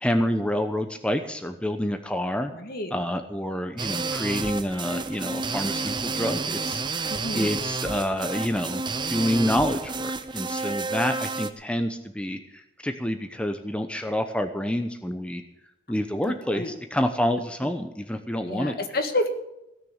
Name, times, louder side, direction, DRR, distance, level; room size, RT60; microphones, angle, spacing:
voice 1, 0.0-2.5 2.9-15.4 15.9-18.7, equal, 5° left, 6 dB, 0.9 m, -28 dB
voice 2, 2.5-2.9 7.1-7.6 16.5-16.7 17.6-17.7 18.5-19.3, left 2 dB, 60° left, 6 dB, 1.8 m, -29 dB
sound 1, 3.8-11.5, right 4 dB, 25° right, 0.8 m, -30 dB
16.5 x 6.8 x 8.7 m, 0.88 s
head